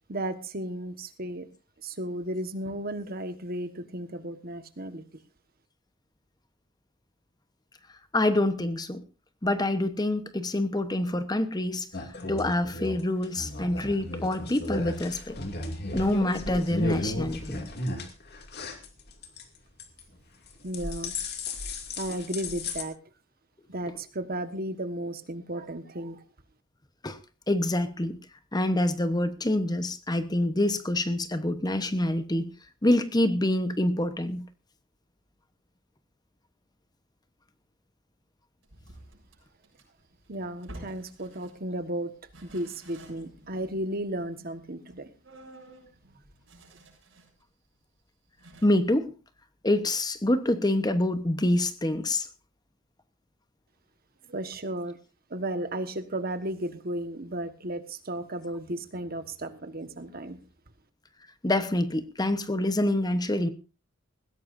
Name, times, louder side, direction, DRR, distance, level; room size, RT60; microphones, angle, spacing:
voice 1, 0.1-1.5 1.8-5.0 20.6-21.1 22.0-23.0 23.7-26.2 40.3-42.1 42.4-45.1 54.3-55.0 55.3-60.4, right 1 dB, 50° right, 1.4 m, -34 dB
voice 2, 8.1-9.0 9.4-15.4 15.9-17.6 23.9-24.0 27.0-27.2 27.5-28.2 28.5-32.5 32.8-34.4 48.6-49.1 49.6-52.3 61.4-63.5, left 1 dB, 20° left, 1.0 m, -26 dB
sound 1, 11.9-19.4 19.8-20.2 20.5-22.8, left 2 dB, 55° left, 2.5 m, -35 dB
sound 2, 38.6-41.8 42.2-47.4 47.8-47.9 48.4-48.7, right 1 dB, 75° right, 7.2 m, -50 dB
20.0 x 16.0 x 2.6 m
head